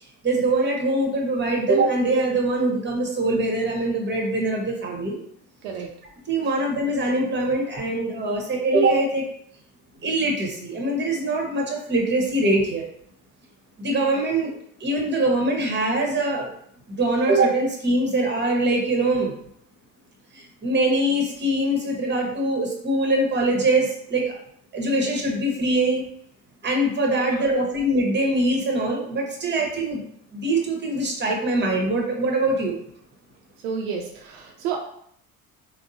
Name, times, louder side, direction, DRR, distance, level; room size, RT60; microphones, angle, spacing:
voice 1, 0.2-5.2 6.3-9.2 10.0-12.8 13.8-14.5 14.8-16.5 16.9-19.3 20.3-24.3 24.7-26.0 26.6-30.0 30.3-32.8, right 2 dB, 25° right, 1 dB, 1.0 m, -23 dB
voice 2, 33.6-34.8, right 6 dB, 75° right, 1 dB, 0.6 m, -30 dB
3.6 x 2.2 x 2.7 m, 0.67 s
hypercardioid pair, 60°, 44 cm